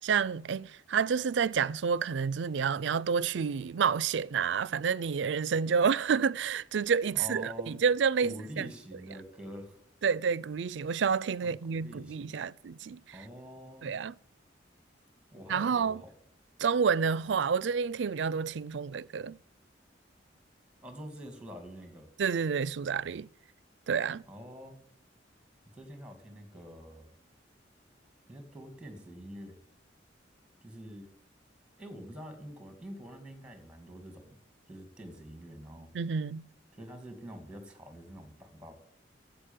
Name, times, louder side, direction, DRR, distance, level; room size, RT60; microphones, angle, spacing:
voice 1, 0.0-8.7 10.0-13.2 13.8-14.1 15.5-16.0 16.6-19.4 22.2-23.3 23.9-24.2 35.9-36.5, right 6 dB, 70° right, 0.4 m, -29 dB
voice 2, 7.1-7.7 8.2-9.8 11.4-12.4 13.1-13.9 15.3-16.1 20.8-22.1 24.3-24.8 25.7-27.1 28.3-29.6 30.6-31.1 31.8-34.4 34.7-35.9 36.7-38.7, equal, 5° right, 2.4 m, -46 dB
11.5 x 8.0 x 9.1 m
head